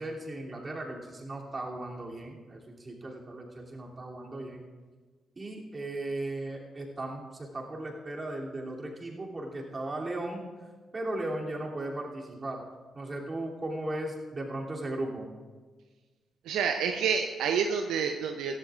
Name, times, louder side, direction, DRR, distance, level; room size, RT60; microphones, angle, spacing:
voice 1, 0.0-4.6 5.4-10.4 10.9-12.6 12.9-15.3, right 1 dB, 35° right, -2 dB, 2.9 m, -36 dB
voice 2, 16.5-18.6, right 6 dB, 75° right, 5 dB, 0.6 m, -28 dB
16.0 x 15.0 x 2.5 m, 1.4 s
hypercardioid pair, 40°, 0 cm